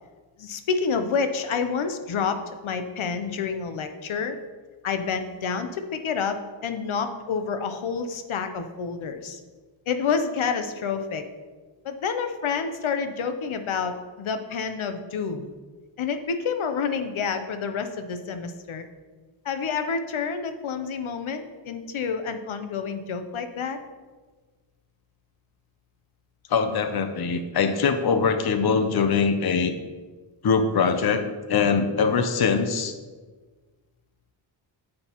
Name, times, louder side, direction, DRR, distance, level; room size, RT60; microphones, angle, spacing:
voice 1, 0.4-2.4 2.6-4.4 4.8-6.4 6.6-9.4 9.9-11.2 11.8-15.5 16.0-18.8 19.4-23.8, left 5 dB, 90° left, 8 dB, 0.8 m, -28 dB
voice 2, 26.5-29.7 30.4-31.2 31.5-32.9, left 5 dB, 55° left, 8 dB, 0.7 m, -22 dB
9.7 x 7.6 x 3.0 m, 1.4 s
wide cardioid pair, 145°, 47 cm